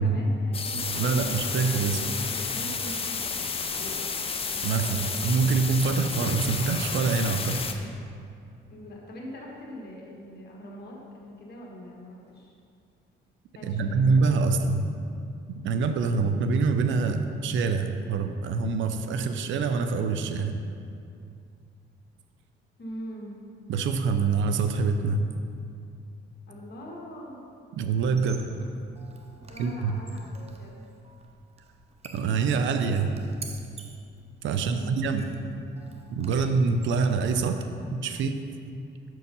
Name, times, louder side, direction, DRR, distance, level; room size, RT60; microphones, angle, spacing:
voice 1, 0.0-1.4 1.6-4.1 4.5-5.2 8.7-12.5 13.5-14.1 22.8-23.4 26.5-27.4 29.3-30.8 34.5-35.0, equal, 55° left, -2 dB, 1.6 m, -43 dB
sound 1, 0.5-7.7, left 5 dB, 30° left, 0.5 m, -31 dB
voice 2, 1.0-2.0 4.6-7.6 13.6-14.9 15.6-20.5 23.7-25.3 27.8-28.5 29.6-29.9 32.1-33.2 34.4-35.5 36.1-37.6 37.9-38.4, right 4 dB, 70° right, 7 dB, 0.5 m, -25 dB
Squeak, 28.1-37.7, right 4 dB, 30° right, 0.6 m, -49 dB
6.3 x 4.6 x 5.4 m, 2.5 s
cardioid pair, 90°, 20 cm